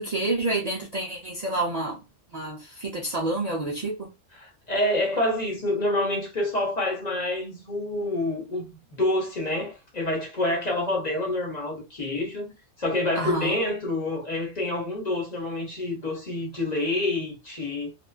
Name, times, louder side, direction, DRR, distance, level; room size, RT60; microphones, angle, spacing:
voice 1, 0.0-2.0 2.3-4.1 13.1-13.6, right 2 dB, 50° right, 0.5 m, -28 dB
voice 2, 4.4-8.7 9.0-12.5 12.8-17.9, left 2 dB, 40° left, 0.9 m, -27 dB
2.4 x 2.2 x 2.3 m
omnidirectional pair, 1.2 m